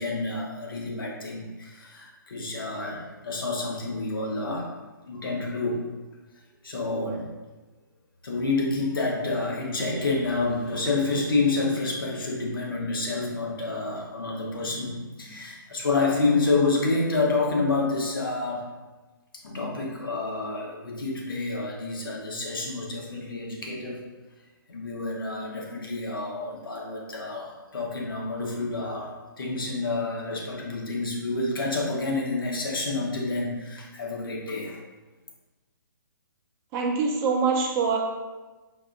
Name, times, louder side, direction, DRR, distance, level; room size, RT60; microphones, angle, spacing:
voice 1, 0.0-4.7 5.0-5.8 6.6-7.3 8.2-18.7 19.4-24.0 24.7-29.1 29.4-34.8, left 3 dB, 75° left, -2 dB, 0.9 m, -28 dB
voice 2, 36.7-38.0, right 5 dB, 25° right, -1 dB, 0.6 m, -24 dB
4.5 x 2.5 x 2.5 m, 1.2 s
hypercardioid pair, 135°, 12 cm